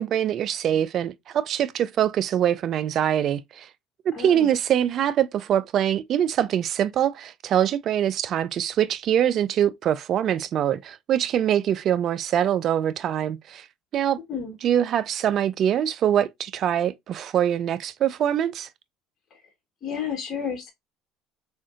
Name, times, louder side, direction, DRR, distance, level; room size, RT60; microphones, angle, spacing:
voice 1, 0.0-3.7 4.2-13.6 13.9-14.2 14.6-18.7, right 10 dB, 55° right, 0.4 m, -23 dB
voice 2, 4.1-4.5 14.3-14.6 19.3-19.4 19.8-20.7, left 7 dB, 40° left, 1.2 m, -31 dB
3.6 x 2.5 x 2.4 m
supercardioid pair, 85°, 0 cm